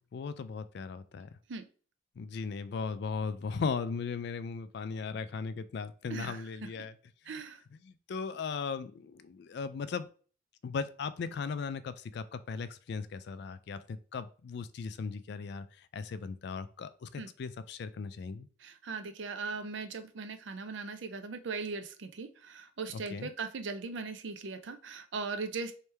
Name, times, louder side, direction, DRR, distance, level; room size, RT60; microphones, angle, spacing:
voice 1, 0.1-1.3 2.2-6.9 7.8-10.1 10.6-15.7 15.9-18.5 22.9-23.3, left 5 dB, 60° left, 13 dB, 0.3 m, -37 dB
voice 2, 6.1-6.7 7.3-7.6 17.2-17.3 18.6-25.7, right 4 dB, 75° right, 8 dB, 0.5 m, -39 dB
3.2 x 3.1 x 3.3 m, 0.40 s
head